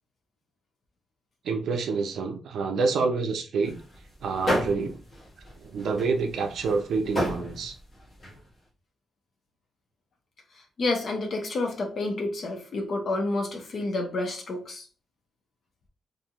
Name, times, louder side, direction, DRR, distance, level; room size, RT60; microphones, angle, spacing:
voice 1, 1.4-3.8 4.2-5.0 5.6-7.8, right 4 dB, 70° right, 0.4 m, -27 dB
sound 1, 3.6-8.4, equal, 25° left, 0.9 m, -32 dB
voice 2, 10.8-14.8, left 2 dB, 45° left, 0.6 m, -29 dB
2.5 x 2.2 x 2.8 m
cardioid pair, 145°, 0 cm